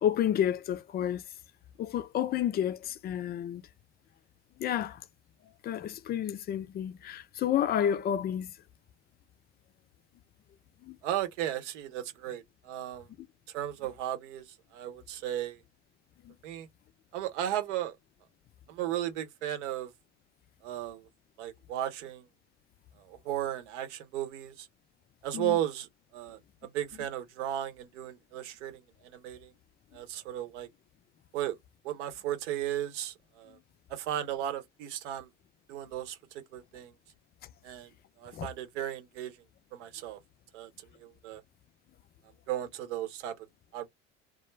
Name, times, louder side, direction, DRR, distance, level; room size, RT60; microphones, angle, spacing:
voice 1, 0.0-1.2 1.8-3.6 4.6-5.0 5.6-8.5 10.9-11.0 16.3-16.4 25.3-25.6 38.3-38.5, left 10 dB, 25° left, 0.4 m, -30 dB
voice 2, 11.0-13.1 13.5-14.4 14.7-15.6 16.4-16.7 17.1-18.0 18.7-19.9 20.6-21.0 21.4-22.3 23.0-24.7 25.2-25.9 26.1-29.5 29.9-30.7 31.3-31.6 31.8-33.6 33.9-35.3 35.7-36.9 37.6-37.9 38.2-39.4 39.7-40.2 40.5-40.7 41.0-41.4 42.5-43.3 43.7-43.9, right 12 dB, 70° right, 0.9 m, -35 dB
2.3 x 2.0 x 3.1 m
hypercardioid pair, 70°, 36 cm